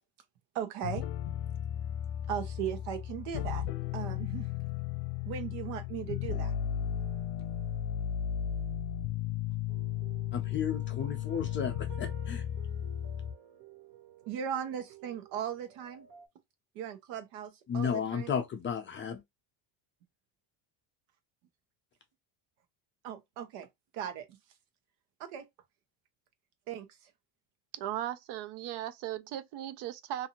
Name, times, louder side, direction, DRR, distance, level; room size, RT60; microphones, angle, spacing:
voice 1, 0.5-1.0 2.3-3.7 3.9-4.5 5.2-6.5 14.3-16.1 16.7-18.3 23.0-23.7 23.9-24.3 25.2-25.5 26.7-26.9, right 9 dB, 90° right, 0.9 m, -37 dB
sound 1, 0.8-13.3, left 10 dB, 60° left, 0.7 m, -35 dB
sound 2, 9.7-16.3, right 9 dB, 40° right, 1.0 m, -53 dB
voice 2, 10.3-12.4 17.7-19.2, left 7 dB, 25° left, 0.4 m, -33 dB
voice 3, 27.7-30.3, right 12 dB, 60° right, 0.5 m, -37 dB
2.6 x 2.5 x 2.8 m
cardioid pair, 155°, 49 cm